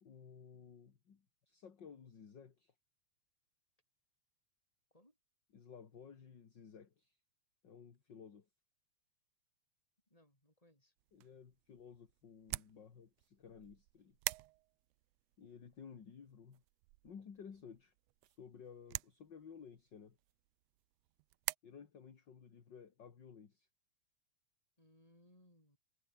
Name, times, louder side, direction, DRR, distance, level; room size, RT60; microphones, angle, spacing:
voice 1, 0.0-2.7 5.5-7.2 7.6-8.5 11.1-14.2 15.4-16.6 17.0-17.9 18.2-20.2 21.6-23.7, left 6 dB, 40° left, 2.4 m, -55 dB
voice 2, 10.1-10.9 24.8-25.8, left 1 dB, 10° left, 8.1 m, -67 dB
sound 1, 11.0-21.6, right 20 dB, 90° right, 1.4 m, -48 dB
omnidirectional pair, 3.5 m